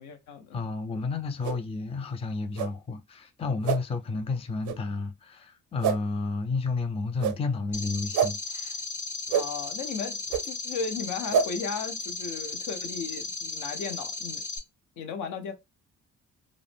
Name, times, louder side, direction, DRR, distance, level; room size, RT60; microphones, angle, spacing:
voice 1, 0.0-0.6 9.3-10.2 10.4-14.4 15.0-15.5, left 5 dB, 75° left, 0.7 m, -35 dB
voice 2, 0.5-8.8, left 3 dB, 20° left, 0.4 m, -31 dB
sound 1, 1.4-1.6 2.5-2.7 3.6-3.8 4.6-4.8 5.8-6.0 7.2-7.4 8.1-8.3 9.3-9.4 10.3-10.4 11.3-11.5, right 7 dB, 80° right, 0.5 m, -25 dB
sound 2, 7.7-14.6, left 3 dB, 40° left, 1.2 m, -35 dB
2.5 x 2.0 x 3.3 m
cardioid pair, 90°, 30 cm